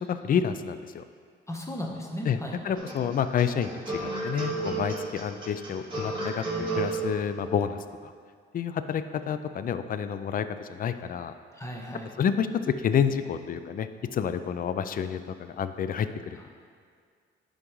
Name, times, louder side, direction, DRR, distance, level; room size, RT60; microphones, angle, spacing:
voice 1, 0.1-1.0 2.2-7.8 8.0-8.1 8.5-11.3 12.2-12.5 12.8-15.2 15.6-16.4, left 8 dB, 45° left, 11 dB, 0.4 m, -29 dB
voice 2, 1.5-2.7 11.5-12.1, equal, 15° left, 0 dB, 1.0 m, -36 dB
sound 1, 2.7-7.0, right 3 dB, 25° right, 1.9 m, -32 dB
9.8 x 5.2 x 3.1 m, 2.1 s
cardioid pair, 90°, 20 cm